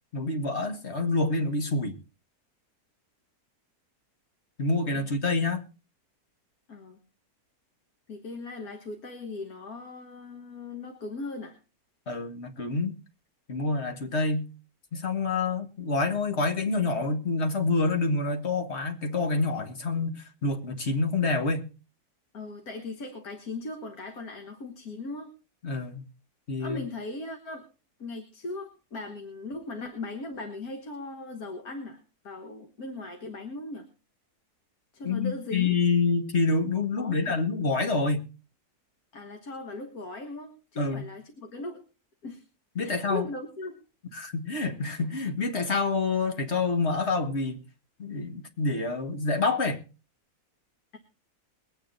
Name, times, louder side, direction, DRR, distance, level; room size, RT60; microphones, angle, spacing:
voice 1, 0.1-1.9 4.6-5.6 12.1-12.9 13.5-14.5 14.9-21.7 25.6-26.0 26.5-26.8 35.0-38.2 40.8-41.0 42.8-43.3 44.1-47.6 48.0-49.8, left 3 dB, 45° left, 1.8 m, -27 dB
voice 2, 6.7-7.0 8.1-11.6 22.3-25.3 26.6-27.7 28.0-33.9 34.9-35.7 37.0-37.4 39.1-41.8 42.2-42.4 42.8-43.8, left 2 dB, 65° left, 1.9 m, -38 dB
22.0 x 8.9 x 4.0 m
omnidirectional pair, 1.7 m